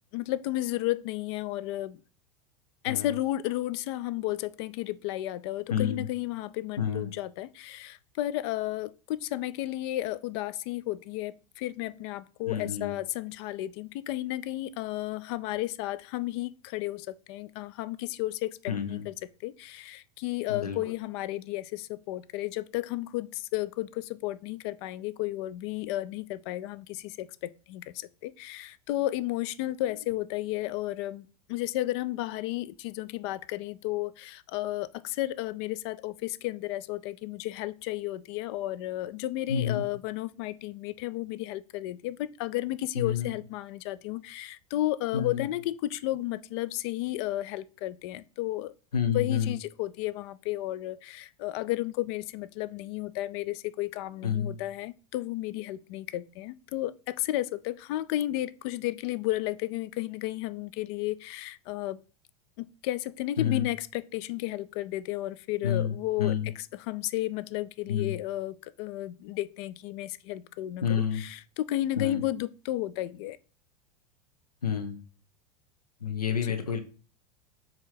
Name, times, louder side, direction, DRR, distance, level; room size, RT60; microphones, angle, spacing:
voice 1, 0.1-2.0 2.8-19.2 19.4-48.7 49.1-62.0 62.6-73.4 76.4-76.6, left 15 dB, 45° left, 0.4 m, -33 dB
voice 2, 5.7-6.0 6.8-7.1 12.4-12.9 18.7-19.0 20.5-20.8 39.5-39.8 43.0-43.3 45.1-45.4 48.9-49.5 54.2-54.6 63.4-63.7 65.6-66.5 67.9-68.1 70.8-71.2 72.0-72.2 74.6-75.0 76.0-76.8, left 8 dB, 80° left, 0.9 m, -29 dB
7.2 x 3.0 x 4.5 m
figure-of-eight pair, 85°, 19 cm